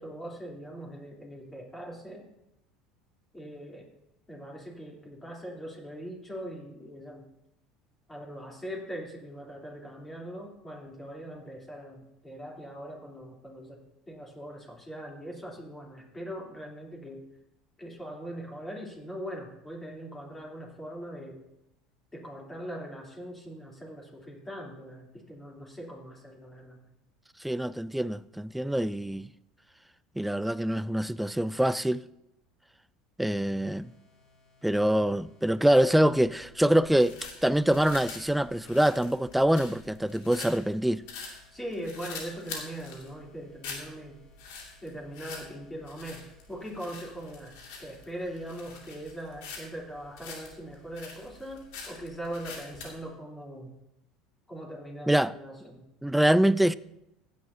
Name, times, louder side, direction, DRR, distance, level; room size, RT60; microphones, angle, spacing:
voice 1, 0.0-2.2 3.3-3.9 4.3-7.3 8.1-13.8 14.1-17.3 17.8-21.4 22.1-26.8 41.5-44.2 44.8-46.2 46.5-53.7 54.5-55.9, right 1 dB, 15° left, 3.3 m, -41 dB
voice 2, 27.4-29.3 30.2-32.0 33.2-33.9 34.6-37.1 37.4-41.0 55.1-55.3 56.0-56.7, right 1 dB, 5° right, 0.4 m, -24 dB
sound 1, 33.6-53.2, left 3 dB, 30° left, 3.4 m, -64 dB
sound 2, 35.8-53.0, left 4 dB, 65° left, 2.4 m, -45 dB
15.5 x 10.0 x 2.8 m
hypercardioid pair, 70°, 2 cm